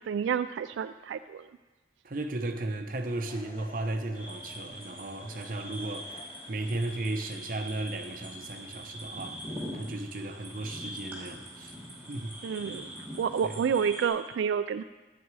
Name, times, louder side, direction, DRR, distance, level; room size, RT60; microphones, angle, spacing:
voice 1, 0.0-1.5 12.4-12.9 13.2-14.8, right 7 dB, 85° right, 10 dB, 0.3 m, -29 dB
voice 2, 2.0-6.1 6.5-9.4 9.7-11.7 12.1-12.3 13.4-13.5, right 2 dB, 50° right, 6 dB, 0.8 m, -35 dB
sound 1, 3.0-6.8, left 2 dB, 30° left, 0.7 m, -53 dB
sound 2, 4.1-14.1, equal, 10° right, 2.5 m, -43 dB
11.0 x 8.5 x 4.7 m, 1.2 s
head